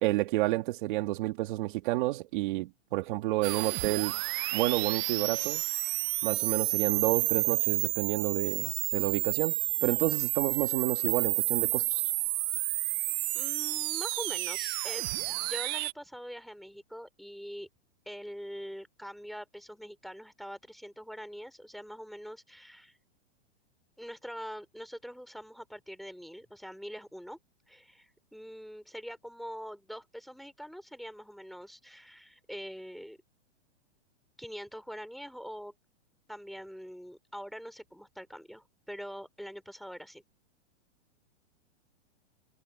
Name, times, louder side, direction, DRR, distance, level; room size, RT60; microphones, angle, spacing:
voice 1, 0.0-4.2 4.5-5.6 6.2-12.0, right 18 dB, 45° right, 2.1 m, -30 dB
sound 1, 3.4-15.9, right 20 dB, 20° right, 0.4 m, -30 dB
voice 2, 13.3-15.1 15.4-17.7 18.0-23.0 24.0-27.4 27.7-33.2 34.4-35.7 36.3-40.2, equal, ahead, 3.1 m, -44 dB
hypercardioid pair, 160°, 36 cm